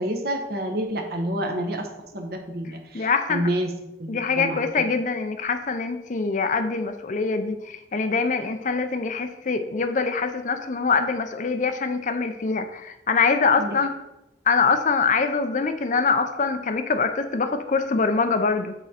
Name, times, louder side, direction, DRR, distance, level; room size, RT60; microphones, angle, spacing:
voice 1, 0.0-1.9 2.1-3.7 4.0-4.6 13.6-13.8, right 1 dB, 60° right, 4 dB, 1.0 m, -28 dB
voice 2, 2.9-3.4 4.1-13.9 14.5-18.7, left 4 dB, 45° left, 8 dB, 0.6 m, -24 dB
8.1 x 3.7 x 4.3 m, 0.90 s
head